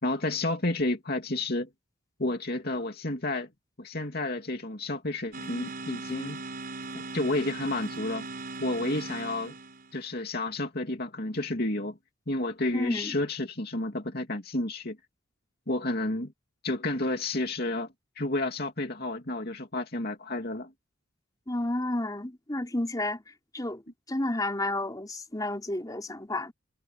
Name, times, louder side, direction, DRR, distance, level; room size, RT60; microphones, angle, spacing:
voice 1, 0.0-1.7 2.2-3.5 3.8-6.4 6.9-8.2 8.6-9.6 9.9-12.0 12.3-15.0 15.7-16.3 16.6-17.9 18.2-20.7, left 2 dB, 50° left, 2.8 m, -31 dB
sound 1, 5.3-10.0, right 3 dB, 45° right, 7.6 m, -39 dB
voice 2, 12.7-13.1 21.5-23.2 23.5-23.8 24.1-26.5, left 1 dB, 20° left, 3.7 m, -31 dB
head